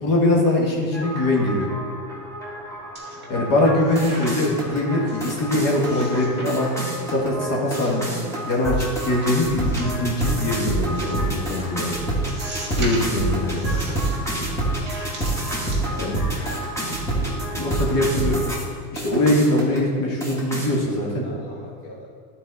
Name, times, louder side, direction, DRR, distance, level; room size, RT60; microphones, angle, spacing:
voice 1, 0.0-1.7 3.3-6.7 7.1-8.1 8.4-11.9 12.8-13.7 16.0-16.2 17.1-18.4 18.9-21.3, left 1 dB, 50° left, -3 dB, 1.5 m, -22 dB
sound 1, 0.9-18.6 19.0-19.8 20.2-20.7, right 1 dB, 5° left, 1.3 m, -28 dB
sound 2, 2.9-3.5 3.8-4.7 5.1-5.2 5.8-6.5 6.8-7.3 7.6-8.8 9.5-10.2 10.9-11.2 11.6-11.7 12.3-13.2 13.5-14.2 14.8-16.3 16.6-16.8, right 2 dB, 25° right, 1.7 m, -38 dB
voice 2, 3.1-3.5 14.4-14.8 15.7-16.5 21.2-22.1, left 1 dB, 30° left, -5 dB, 1.2 m, -44 dB
11.0 x 4.1 x 3.9 m, 2.1 s
supercardioid pair, 140°, 42 cm